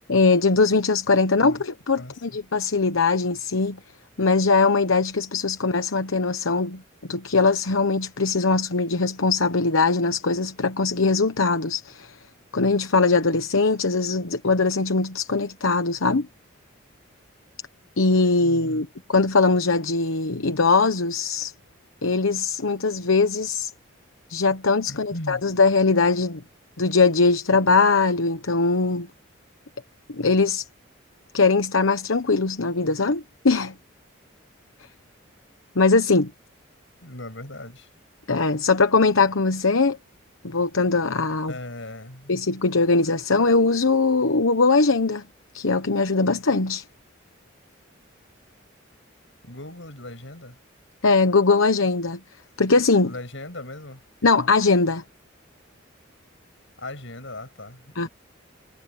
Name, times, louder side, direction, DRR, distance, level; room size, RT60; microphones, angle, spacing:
voice 1, 0.1-3.8 4.2-6.8 7.1-12.2 12.5-16.3 18.0-21.5 22.0-23.7 24.3-26.4 26.8-29.1 30.1-30.6 31.3-33.7 35.7-36.3 38.3-40.0 40.4-41.5 42.3-45.2 45.5-46.8 51.0-52.2 52.6-53.1 54.2-55.0 57.9-58.1, left 3 dB, 85° left, 1.1 m, -21 dB
voice 2, 18.4-18.8 24.9-25.4 37.0-37.9 41.5-42.4 49.4-50.6 53.0-54.0 56.8-58.1, left 1 dB, 65° left, 6.9 m, -38 dB
head